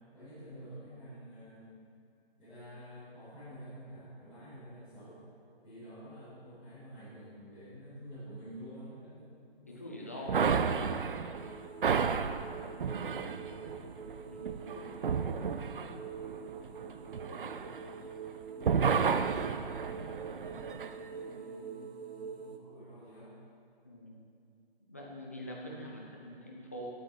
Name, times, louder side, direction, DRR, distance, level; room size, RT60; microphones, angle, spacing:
voice 1, 0.1-1.7 2.4-5.2 5.6-10.5 12.6-13.8 14.5-17.8 18.3-23.3, equal, 5° right, -19 dB, 2.3 m, -51 dB
voice 2, 9.7-10.7 14.3-14.7 23.8-24.2 24.9-26.9, equal, 15° left, -3 dB, 0.5 m, -44 dB
sound 1, 10.3-18.3 18.6-20.9, right 6 dB, 60° right, 0.4 m, -32 dB
sound 2, 11.3-22.6, right 6 dB, 80° right, 0.9 m, -45 dB
9.4 x 7.8 x 4.8 m, 2.4 s
hypercardioid pair, 165°, 31 cm